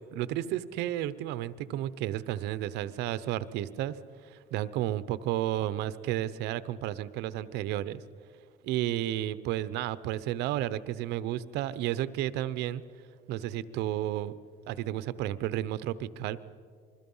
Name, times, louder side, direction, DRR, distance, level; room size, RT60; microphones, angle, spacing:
voice 1, 0.1-4.0 4.2-8.0 8.6-12.8 13.3-14.4 14.6-16.4, right 13 dB, 90° right, 16 dB, 0.9 m, -32 dB
27.5 x 22.0 x 5.6 m, 2.1 s
cardioid pair, 110°, 17 cm